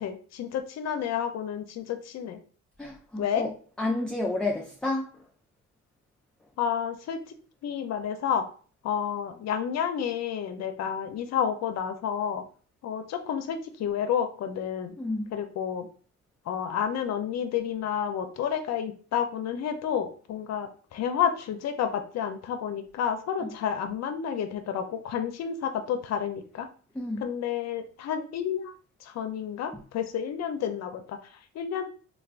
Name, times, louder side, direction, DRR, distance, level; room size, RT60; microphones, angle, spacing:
voice 1, 0.0-2.4 3.2-3.5 6.6-7.2 7.6-8.5 8.8-12.4 12.8-15.0 15.3-15.9 16.5-26.7 27.2-28.7 29.0-31.8, left 8 dB, 60° left, 0.5 m, -30 dB
voice 2, 2.8-3.5 3.8-5.2 15.0-15.3 27.0-27.3, left 2 dB, 5° left, 0.3 m, -30 dB
3.3 x 2.3 x 2.4 m
cardioid pair, 90°, 30 cm